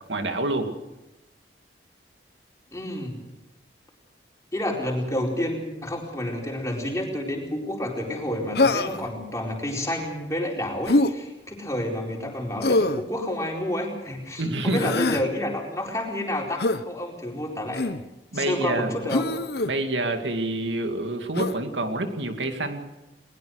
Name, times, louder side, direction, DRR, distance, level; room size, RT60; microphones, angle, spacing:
voice 1, 0.1-0.7 14.4-14.9 18.3-19.0 19.7-22.8, right 2 dB, 80° right, 6 dB, 2.3 m, -27 dB
voice 2, 2.7-3.2 4.5-17.9 18.3-19.3, left 1 dB, 15° left, -1 dB, 4.5 m, -29 dB
Human voice, 8.6-9.1 10.9-11.1 12.6-13.0 14.7-15.3 16.6-16.8 17.7-18.0 19.1-19.7 21.4-21.6, left 2 dB, 60° left, 0.9 m, -23 dB
20.5 x 20.5 x 6.6 m, 0.98 s
head